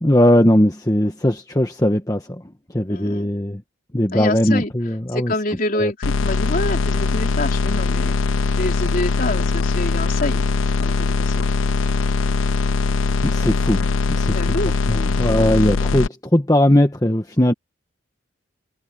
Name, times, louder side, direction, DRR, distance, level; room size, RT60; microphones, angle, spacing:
voice 1, 0.0-2.4 2.7-3.6 3.9-5.3 5.7-5.9 13.2-13.9 14.2-14.6 14.9-17.5, left 1 dB, 20° left, 1.3 m, -19 dB
voice 2, 2.9-3.3 4.1-4.7 5.1-6.0 6.2-8.2 8.6-10.4 10.8-11.5 14.3-14.7 15.3-15.4, left 1 dB, 45° left, 4.0 m, -26 dB
sound 1, 6.0-16.1, left 4 dB, 80° left, 0.6 m, -21 dB
head